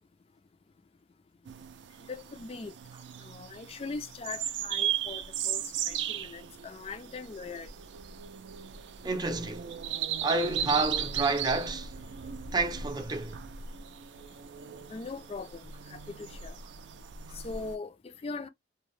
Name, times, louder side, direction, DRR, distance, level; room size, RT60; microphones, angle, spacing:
sound 1, 1.4-17.7, right 9 dB, 80° right, 0.4 m, -37 dB
voice 1, 2.1-2.7 3.2-7.7 10.8-10.9 14.9-16.5 17.3-18.5, left 4 dB, 35° left, 0.3 m, -41 dB
voice 2, 9.0-9.8 10.2-11.9 12.5-13.4, right 3 dB, 25° right, 0.5 m, -29 dB
2.7 x 2.1 x 3.1 m
head